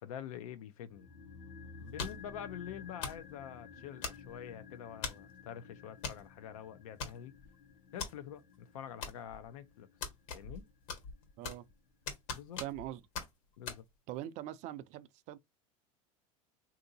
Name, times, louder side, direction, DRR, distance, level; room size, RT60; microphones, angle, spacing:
voice 1, 0.0-1.1 1.8-7.3 7.9-9.9 10.3-10.6 12.3-12.6 13.6-13.8, left 9 dB, 90° left, 0.6 m, -46 dB
sound 1, 0.9-11.2 11.4-11.5, left 5 dB, 40° left, 0.7 m, -53 dB
sound 2, 2.0-2.3 3.0-3.3 4.0-4.5 5.0-5.3 6.0-6.2 6.5-6.6 7.0-7.5 8.0-8.1 9.0-9.5 10.0-10.6 10.9-11.7 12.1-12.9 13.1-13.3 13.7-13.8, left 5 dB, 70° left, 1.4 m, -40 dB
voice 2, 12.6-13.0 14.1-15.4, right 13 dB, 45° right, 0.4 m, -42 dB
3.6 x 2.7 x 2.6 m
supercardioid pair, 140°, 17 cm